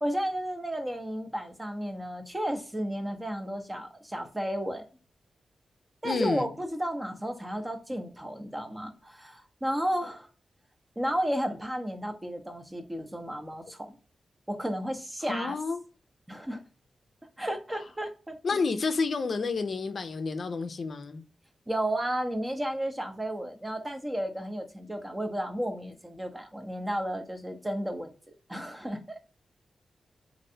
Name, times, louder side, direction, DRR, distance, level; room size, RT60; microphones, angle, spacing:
voice 1, 0.0-4.8 6.0-10.3 11.0-14.0 14.5-15.6 16.3-16.6 17.4-18.3 21.7-28.1 28.5-29.0, equal, 15° right, 0.7 m, -33 dB
voice 2, 6.0-6.5 15.2-15.8 18.4-21.2, left 4 dB, 60° left, 0.5 m, -30 dB
3.1 x 2.6 x 2.7 m
cardioid pair, 80°, 0 cm